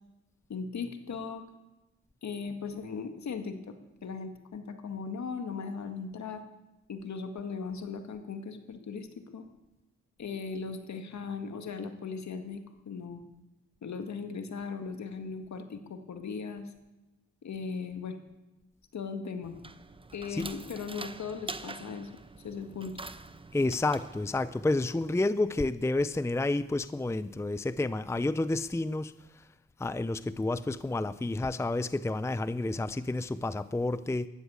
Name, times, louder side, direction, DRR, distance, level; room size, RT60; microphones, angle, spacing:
voice 1, 0.5-1.4 2.2-3.7 4.0-6.4 6.9-9.1 9.3-9.5 10.2-13.2 13.8-16.7 17.4-18.2 18.9-19.6 20.1-22.1 22.4-23.0, left 5 dB, 65° left, 1.9 m, -38 dB
sound 1, 19.4-25.1, right 3 dB, 15° right, 1.0 m, -45 dB
voice 2, 23.5-29.1 29.8-34.3, left 2 dB, 10° left, 0.6 m, -30 dB
13.0 x 11.0 x 8.2 m
supercardioid pair, 55°, 31 cm